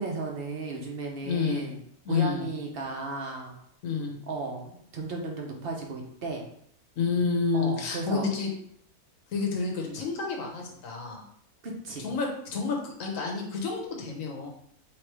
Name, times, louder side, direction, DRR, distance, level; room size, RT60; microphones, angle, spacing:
voice 1, 0.0-1.8 2.1-3.6 4.3-6.4 7.5-8.3 11.6-12.1, right 3 dB, 45° right, 1 dB, 0.9 m, -35 dB
voice 2, 1.2-1.7 2.0-2.4 3.8-4.2 7.0-8.5 9.3-11.2 12.0-14.5, left 5 dB, 65° left, 1 dB, 1.3 m, -29 dB
3.5 x 3.1 x 4.6 m, 0.67 s
omnidirectional pair, 1.5 m